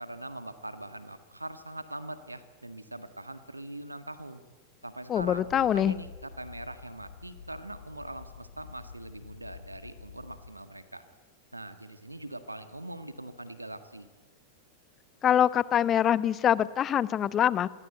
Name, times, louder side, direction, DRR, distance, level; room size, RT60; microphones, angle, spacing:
voice 1, 0.0-4.4 4.8-11.0 11.5-14.1, right 1 dB, 85° right, 11 dB, 1.7 m, -42 dB
sound 1, 5.1-10.5, left 6 dB, 70° left, 2.5 m, -48 dB
voice 2, 5.1-6.0 15.2-17.7, left 10 dB, 25° left, 18 dB, 1.0 m, -24 dB
27.0 x 23.0 x 9.2 m, 1.2 s
figure-of-eight pair, 90°, 0 cm